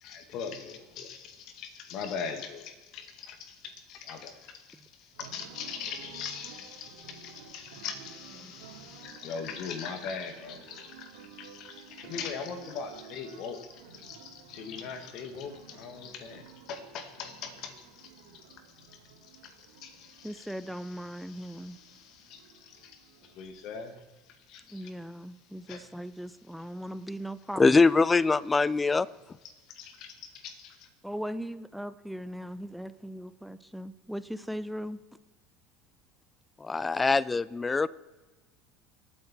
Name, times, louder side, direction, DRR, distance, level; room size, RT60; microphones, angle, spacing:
voice 1, 0.0-3.6 3.9-4.5 5.2-11.1 11.4-18.1 19.4-19.5 19.8-20.5 21.1-22.9 23.4-23.9 24.5-24.8 25.7-25.8 29.8-30.1 30.4-30.8, left 6 dB, 55° left, 8 dB, 2.0 m, -41 dB
sound 1, 5.1-23.5, right 7 dB, 70° right, 2.8 m, -53 dB
voice 2, 20.2-21.8 24.7-27.8 31.0-35.0, equal, ahead, 14 dB, 0.8 m, -39 dB
voice 3, 27.6-29.1 36.6-37.9, left 4 dB, 20° left, 21 dB, 0.5 m, -23 dB
24.0 x 8.9 x 4.4 m, 1.2 s
hypercardioid pair, 70°, 0 cm